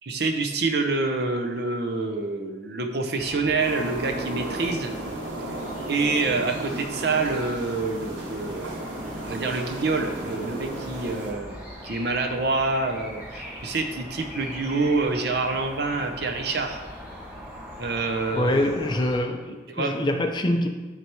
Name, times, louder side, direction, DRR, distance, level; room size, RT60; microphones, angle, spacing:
voice 1, 0.0-4.9 5.9-8.8 9.2-16.8 17.8-18.7 19.5-19.9, right 3 dB, 55° right, 5 dB, 0.7 m, -27 dB
sound 1, 3.2-19.2, equal, 10° right, 1.5 m, -41 dB
sound 2, 3.6-11.3, right 2 dB, 85° right, 1.2 m, -34 dB
voice 2, 18.3-20.7, left 1 dB, 25° left, 5 dB, 0.4 m, -25 dB
9.4 x 3.3 x 4.5 m, 1.3 s
head